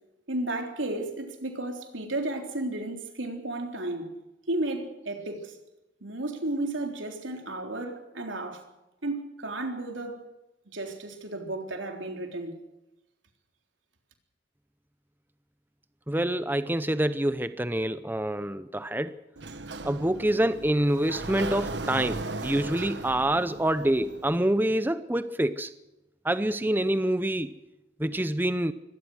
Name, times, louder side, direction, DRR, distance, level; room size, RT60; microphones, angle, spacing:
voice 1, 0.3-4.1 4.5-5.6 6.0-8.7 9.0-10.2 10.7-12.6, right 2 dB, 90° right, 3.7 m, -33 dB
voice 2, 16.1-19.2 19.8-25.7 26.2-27.5 28.0-28.7, right 1 dB, 10° right, 0.6 m, -26 dB
Sliding door, 19.4-24.4, right 2 dB, 65° right, 1.3 m, -37 dB
23.5 x 18.5 x 6.4 m
head